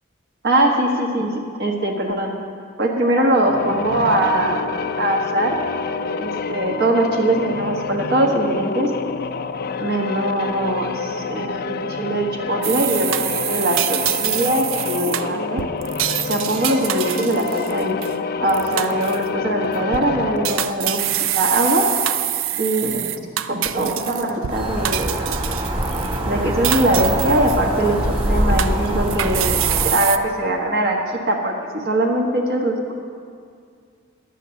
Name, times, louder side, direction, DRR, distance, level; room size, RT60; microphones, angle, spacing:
voice 1, 0.4-2.3 2.8-4.7 5.0-5.5 6.2-8.9 9.8-15.6 16.2-18.0 18.4-21.0 21.3-21.8 22.6-23.0 23.5-25.2 26.3-29.6 29.8-32.9, right 1 dB, 55° right, -1 dB, 1.3 m, -21 dB
sound 1, 3.4-20.9, left 5 dB, 50° left, 0.4 m, -28 dB
sound 2, 12.6-18.2 18.5-19.3 19.8-20.0 20.4-24.5 24.8-26.2 26.6-27.9 28.2-30.2, right 12 dB, 75° right, 0.4 m, -25 dB
sound 3, 24.5-29.9, right 1 dB, 30° right, 2.1 m, -23 dB
11.0 x 8.2 x 7.0 m, 2.2 s
head